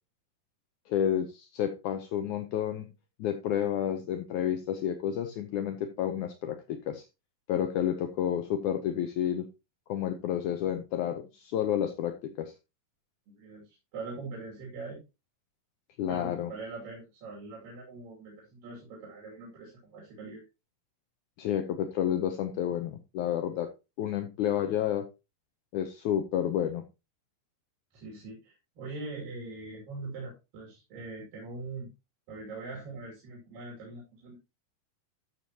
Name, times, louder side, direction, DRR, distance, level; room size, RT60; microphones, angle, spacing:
voice 1, 0.9-2.9 3.2-7.0 7.5-9.5 9.9-12.5 16.0-16.5 21.4-23.7 24.0-25.1 25.7-26.8, left 10 dB, 75° left, 7 dB, 2.1 m, -30 dB
voice 2, 13.4-15.0 16.1-20.4 27.9-31.9 32.3-34.4, right 3 dB, 80° right, -3 dB, 4.3 m, -42 dB
13.5 x 6.9 x 2.9 m, 0.27 s
omnidirectional pair, 3.9 m